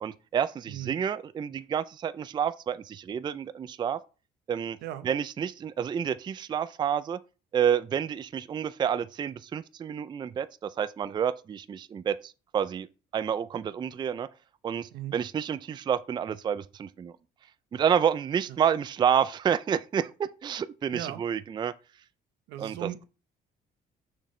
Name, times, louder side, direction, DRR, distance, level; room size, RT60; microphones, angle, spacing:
voice 1, 0.0-4.0 4.5-4.8 5.0-7.2 7.5-12.9 13.1-14.3 14.6-17.1 17.7-21.7 22.6-22.9, right 8 dB, 25° right, 0.3 m, -29 dB
voice 2, 20.9-21.2 22.5-23.0, right 12 dB, 85° right, 0.8 m, -37 dB
6.4 x 6.2 x 3.1 m
cardioid pair, 110°, 17 cm